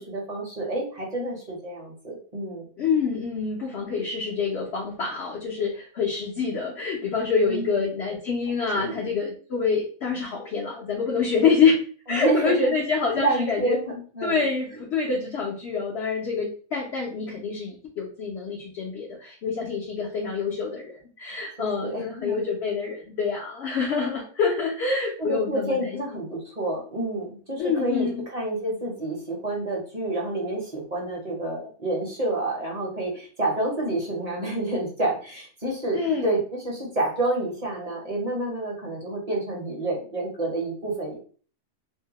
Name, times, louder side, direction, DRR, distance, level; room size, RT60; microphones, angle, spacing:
voice 1, 0.0-2.7 7.5-7.8 8.7-9.0 12.1-12.7 13.2-14.4 21.6-22.4 25.2-41.2, right 2 dB, 35° right, -3 dB, 0.7 m, -29 dB
voice 2, 2.8-11.8 12.1-13.8 14.2-25.9 27.6-28.2 35.9-36.4, left 5 dB, 60° left, -3 dB, 0.7 m, -26 dB
2.7 x 2.2 x 2.8 m, 0.41 s
omnidirectional pair, 1.6 m